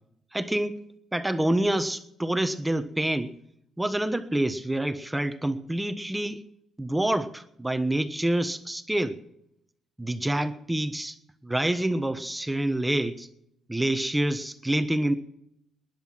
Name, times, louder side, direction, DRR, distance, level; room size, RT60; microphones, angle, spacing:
voice 1, 0.3-3.4 3.8-6.4 6.8-9.2 10.0-11.1 11.4-13.3 13.7-15.1, right 1 dB, 10° right, 1.2 m, -27 dB
20.0 x 10.5 x 6.0 m
cardioid pair, 90°, 0 cm